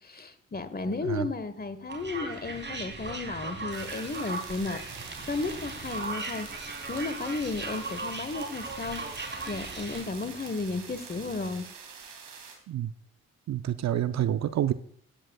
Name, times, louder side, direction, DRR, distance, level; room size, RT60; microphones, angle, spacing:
voice 1, 0.0-5.0 5.3-6.5 6.9-9.0 9.5-11.7, left 3 dB, 25° left, 11 dB, 1.4 m, -33 dB
sound 1, 1.9-10.0, right 3 dB, 30° right, 3.4 m, -38 dB
sound 2, 3.7-12.6, right 6 dB, 65° right, 2.9 m, -45 dB
voice 2, 13.5-14.7, right 11 dB, 50° right, 13 dB, 0.7 m, -28 dB
17.0 x 10.0 x 2.3 m, 0.62 s
hypercardioid pair, 45°, 35 cm